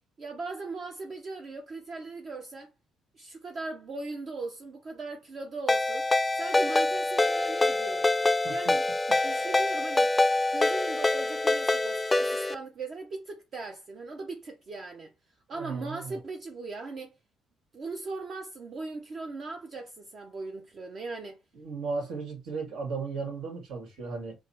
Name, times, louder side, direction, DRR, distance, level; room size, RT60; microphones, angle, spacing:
voice 1, 0.2-2.7 3.1-6.1 6.3-8.1 8.5-8.8 9.2-10.1 10.5-17.1 17.7-21.4, right 3 dB, 40° right, 0.6 m, -39 dB
Ringtone, 5.7-12.6, left 2 dB, 15° left, 0.4 m, -25 dB
voice 2, 15.5-16.2 21.6-24.4, right 4 dB, 80° right, 2.0 m, -35 dB
4.0 x 2.5 x 4.2 m
cardioid pair, 135°, 0 cm